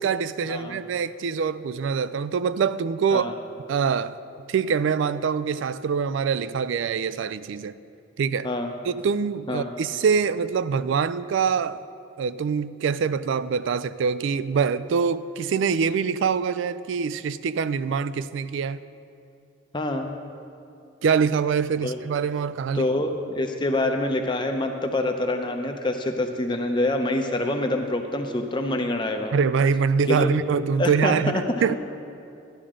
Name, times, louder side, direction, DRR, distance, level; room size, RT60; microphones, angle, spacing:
voice 1, 0.0-3.3 3.7-4.2 4.5-7.7 8.2-8.5 8.8-11.8 12.2-18.8 21.0-22.9 29.3-31.7, right 6 dB, 70° right, 16 dB, 0.3 m, -24 dB
voice 2, 19.7-20.1 21.8-22.0 22.7-29.3 30.1-30.3 30.8-31.4 31.7-31.8, left 1 dB, 25° left, 5 dB, 0.7 m, -26 dB
11.5 x 11.5 x 3.7 m, 2.6 s
head